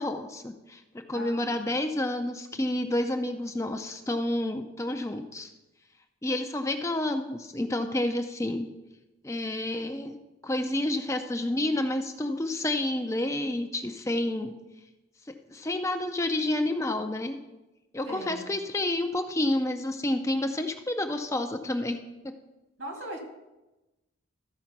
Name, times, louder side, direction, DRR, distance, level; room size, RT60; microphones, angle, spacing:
voice 1, 0.0-5.5 6.2-8.7 9.2-10.2 10.4-14.5 15.3-17.4 17.9-22.3, left 1 dB, 15° left, 6 dB, 0.5 m, -29 dB
voice 2, 1.1-1.7 18.0-18.5 22.8-23.2, equal, 70° right, 2 dB, 2.2 m, -39 dB
13.5 x 5.0 x 5.8 m, 1.0 s
head